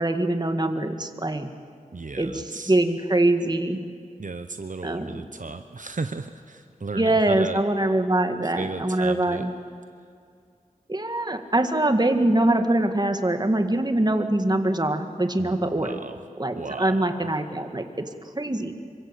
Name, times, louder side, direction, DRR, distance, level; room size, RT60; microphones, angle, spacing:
voice 1, 0.0-1.5 2.2-3.8 4.8-5.2 6.9-9.5 10.9-16.0 16.4-18.1 18.4-18.7, right 1 dB, 30° right, 6 dB, 2.0 m, -23 dB
voice 2, 1.9-2.8 4.2-7.6 8.4-9.4 15.4-16.2 16.5-17.3, right 3 dB, 65° right, 8 dB, 1.0 m, -35 dB
27.0 x 24.0 x 8.4 m, 2.2 s
wide cardioid pair, 60°, 14 cm